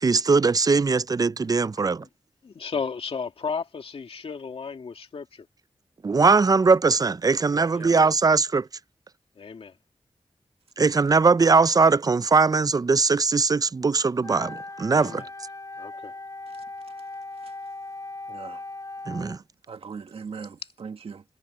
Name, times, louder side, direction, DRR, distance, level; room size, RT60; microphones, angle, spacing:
voice 1, 0.0-2.0 6.0-8.7 10.8-15.2 19.1-19.4, right 4 dB, 40° right, 0.5 m, -20 dB
voice 2, 2.4-5.5 7.7-7.9 9.4-9.8 14.9-15.3 15.8-16.1, left 5 dB, 80° left, 2.4 m, -34 dB
Wind instrument woodwind instrument, 14.2-19.4, left 2 dB, 35° left, 7.2 m, -39 dB
voice 3, 18.3-18.6 19.7-21.2, right 5 dB, 80° right, 1.8 m, -39 dB
cardioid pair, 55°, 10 cm